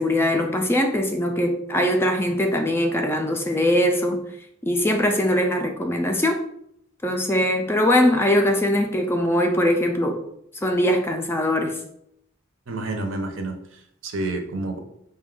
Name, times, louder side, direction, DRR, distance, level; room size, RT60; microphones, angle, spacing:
voice 1, 0.0-4.2 4.6-6.4 7.0-10.2 10.6-11.7, left 1 dB, 10° left, 3 dB, 0.3 m, -21 dB
voice 2, 12.7-14.8, right 2 dB, 70° right, 5 dB, 0.6 m, -29 dB
5.0 x 2.2 x 3.7 m, 0.74 s
head